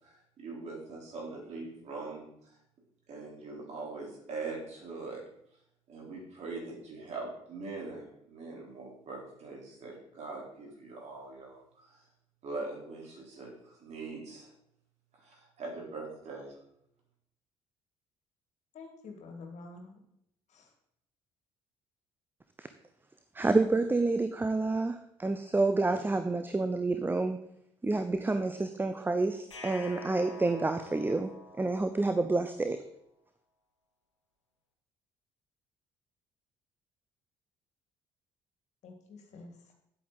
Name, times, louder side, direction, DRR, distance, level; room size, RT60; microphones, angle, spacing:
voice 1, 0.0-2.5 3.1-5.2 5.9-12.0 12.4-14.5 15.2-16.5, right 3 dB, 50° right, -2 dB, 4.1 m, -42 dB
voice 2, 18.7-20.0 20.5-20.7 38.8-39.7, left 3 dB, 55° left, 3 dB, 2.1 m, -48 dB
voice 3, 23.3-27.4 27.8-32.8, right 3 dB, 15° right, 9 dB, 0.7 m, -29 dB
sound 1, 29.5-32.6, left 3 dB, 90° left, 1.0 m, -47 dB
10.0 x 8.5 x 4.1 m, 0.75 s
figure-of-eight pair, 50°, 15 cm